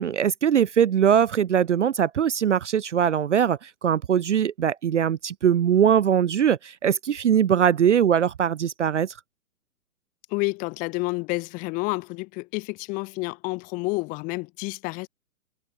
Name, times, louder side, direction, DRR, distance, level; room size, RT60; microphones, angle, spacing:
voice 1, 0.0-9.1, right 8 dB, 50° right, 0.6 m, -21 dB
voice 2, 10.3-15.1, left 26 dB, 20° left, 1.2 m, -29 dB
figure-of-eight pair, 120°, 45 cm